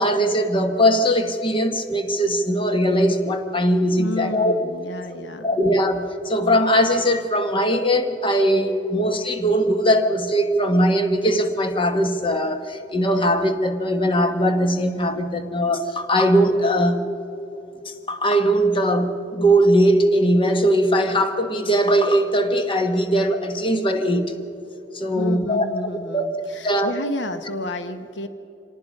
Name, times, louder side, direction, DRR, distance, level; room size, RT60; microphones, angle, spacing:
voice 1, 0.0-4.5 5.4-17.1 17.8-24.3 24.9-25.6 26.1-26.3 26.6-26.9, equal, 30° left, 7 dB, 1.2 m, -20 dB
voice 2, 4.0-5.6 25.1-28.3, left 1 dB, 70° left, 9 dB, 0.9 m, -31 dB
26.0 x 18.5 x 5.4 m, 3.0 s
head